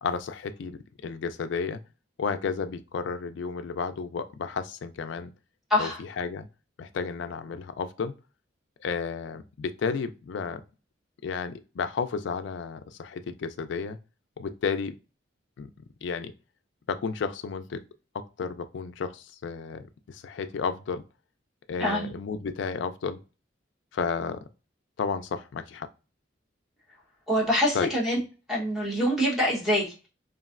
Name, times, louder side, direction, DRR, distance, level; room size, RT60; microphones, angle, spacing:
voice 1, 0.0-1.8 2.2-5.3 5.8-6.5 6.8-8.1 8.8-10.6 11.2-14.0 14.4-14.9 15.6-15.7 16.0-16.3 16.9-17.8 18.1-21.0 21.7-23.2 23.9-24.4 25.0-25.9 27.7-27.9, left 5 dB, 70° left, 0.3 m, -32 dB
voice 2, 21.8-22.1 27.3-28.2 28.5-30.1, equal, ahead, 1.0 m, -25 dB
3.0 x 2.5 x 2.4 m
head